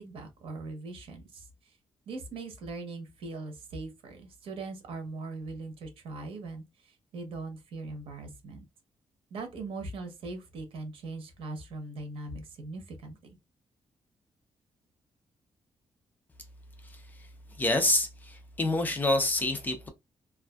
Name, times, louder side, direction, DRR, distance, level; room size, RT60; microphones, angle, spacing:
voice 1, 0.0-1.7 2.1-8.7 9.3-13.4, right 3 dB, 80° right, 0.8 m, -40 dB
voice 2, 17.6-19.9, left 2 dB, 20° left, 0.4 m, -27 dB
2.5 x 2.3 x 2.2 m
wide cardioid pair, 160°, 9 cm